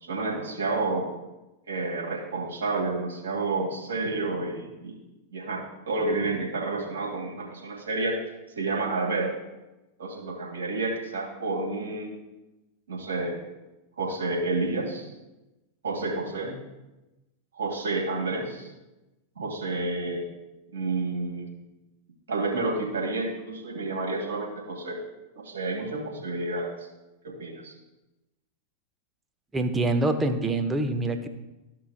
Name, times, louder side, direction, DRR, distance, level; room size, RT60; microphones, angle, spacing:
voice 1, 0.0-1.1 1.7-5.0 5.3-8.2 8.6-9.3 10.0-12.2 12.9-13.4 14.0-15.1 15.8-16.6 17.5-18.7 19.4-20.3 20.7-21.6 22.3-25.0 25.4-26.9 27.2-27.8, right 3 dB, 70° right, -2 dB, 2.6 m, -30 dB
voice 2, 29.5-31.3, right 2 dB, 15° right, 8 dB, 0.8 m, -25 dB
14.0 x 5.6 x 2.5 m, 1.0 s
figure-of-eight pair, 90°, 0 cm